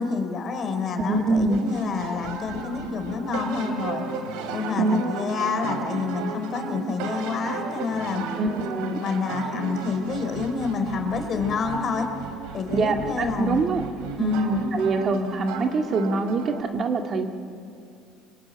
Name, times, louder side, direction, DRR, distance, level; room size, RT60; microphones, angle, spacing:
voice 1, 0.0-4.0 4.5-8.3 9.0-12.1 12.5-13.6 14.1-14.5, left 4 dB, 45° left, 6 dB, 3.7 m, -28 dB
voice 2, 1.0-1.8 4.8-5.0 8.4-9.0 12.7-13.8 14.2-17.3, right 3 dB, 45° right, 4 dB, 1.9 m, -24 dB
sound 1, 1.5-16.6, right 5 dB, 80° right, 2.6 m, -35 dB
24.0 x 21.5 x 9.0 m, 2.5 s
supercardioid pair, 90°, 0 cm